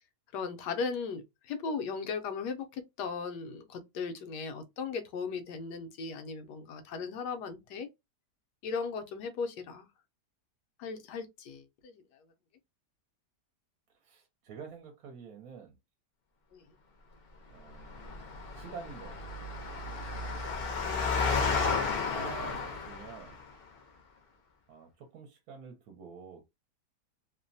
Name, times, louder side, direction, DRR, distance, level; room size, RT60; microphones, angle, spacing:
voice 1, 0.3-7.9 8.6-9.9 10.8-12.0 16.5-16.6, left 5 dB, 85° left, 1.2 m, -37 dB
voice 2, 14.0-15.8 17.5-19.5 22.1-23.4 24.7-26.5, right 6 dB, 70° right, 1.1 m, -48 dB
Engine, 17.8-23.4, left 4 dB, 60° left, 0.6 m, -32 dB
3.0 x 2.1 x 2.6 m
omnidirectional pair, 1.8 m